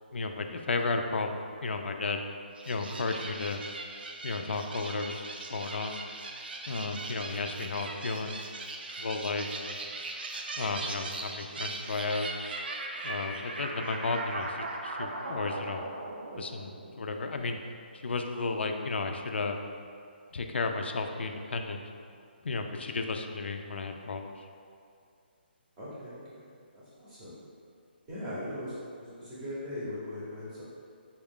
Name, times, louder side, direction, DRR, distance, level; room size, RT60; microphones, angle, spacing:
voice 1, 0.1-2.2 2.7-3.6 4.2-5.2 5.5-6.0 6.7-8.4 9.0-9.9 10.6-12.3 13.0-15.8 16.4-17.6 17.9-19.6 20.3-21.8 22.4-24.5, left 3 dB, 85° left, 5 dB, 0.3 m, -33 dB
sound 1, 2.6-17.2, right 2 dB, 60° right, 0.4 m, -39 dB
voice 2, 25.8-26.5 26.7-27.3 28.1-30.6, left 1 dB, 10° right, -9 dB, 0.6 m, -39 dB
4.1 x 2.4 x 3.6 m, 2.4 s
hypercardioid pair, 175°, 6 cm